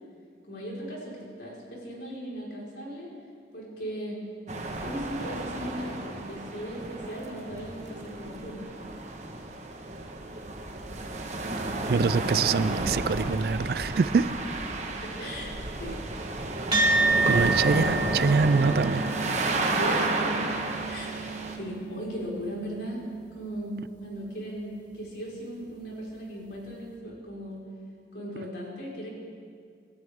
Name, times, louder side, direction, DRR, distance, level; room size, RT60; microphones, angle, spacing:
voice 1, 0.5-3.1 3.5-4.2 4.8-8.6 15.0-15.5 15.8-16.0 17.1-17.4 17.7-18.1 19.8-20.5 20.9-21.1 21.6-23.0 23.3-27.6 28.1-29.1, equal, 75° left, -4 dB, 4.5 m, -37 dB
sound 1, 4.5-21.6, right 2 dB, 40° right, 1.3 m, -32 dB
voice 2, 11.9-14.4 17.3-19.0 23.7-23.8, right 5 dB, 55° right, 17 dB, 0.4 m, -24 dB
sound 2, 16.7-25.4, right 3 dB, 25° right, 2.1 m, -31 dB
27.0 x 12.5 x 3.6 m, 2.2 s
head